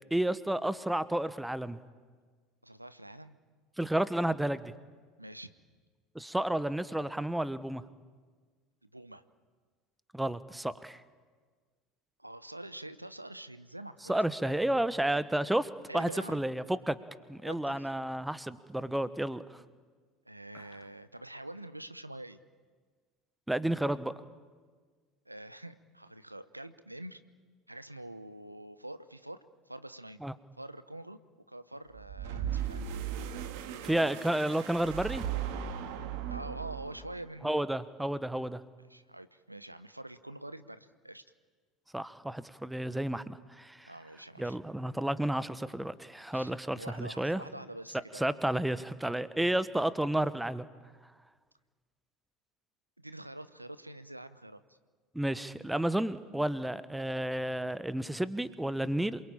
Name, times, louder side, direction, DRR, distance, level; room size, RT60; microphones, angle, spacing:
voice 1, 0.1-1.8 3.8-4.7 6.1-7.8 10.1-11.0 14.1-17.0 17.3-19.6 23.5-24.1 30.2-30.3 33.8-35.2 37.4-38.6 41.9-43.9 44.4-47.4 48.1-50.6 55.1-59.2, right 1 dB, 5° right, 16 dB, 1.1 m, -31 dB
voice 2, 2.6-3.4 5.2-5.5 8.9-9.2 12.2-14.2 14.4-14.5 15.9-16.4 17.4-17.9 20.3-22.4 25.3-27.2 27.7-30.2 30.6-31.2 31.5-32.8 36.3-37.5 38.9-41.2 43.8-44.6 46.3-48.3 53.0-54.8, right 1 dB, 90° right, 13 dB, 0.8 m, -46 dB
sound 1, 31.9-37.2, right 9 dB, 60° right, 1.8 m, -37 dB
27.5 x 22.5 x 8.9 m, 1.5 s
figure-of-eight pair, 70°, 0 cm